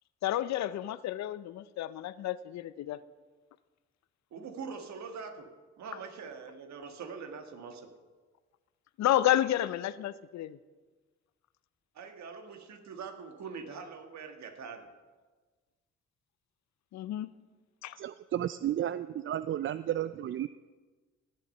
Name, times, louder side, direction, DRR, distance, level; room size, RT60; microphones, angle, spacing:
voice 1, 0.2-3.0 9.0-10.6 16.9-17.3 17.8-18.0, left 13 dB, 65° left, 16 dB, 0.6 m, -30 dB
voice 2, 4.3-5.5 5.8-7.9 11.9-14.9, right 5 dB, 65° right, 6 dB, 1.6 m, -43 dB
voice 3, 18.0-20.5, right 11 dB, 45° right, 15 dB, 0.4 m, -33 dB
17.5 x 6.5 x 5.4 m, 1.3 s
supercardioid pair, 50°, 30 cm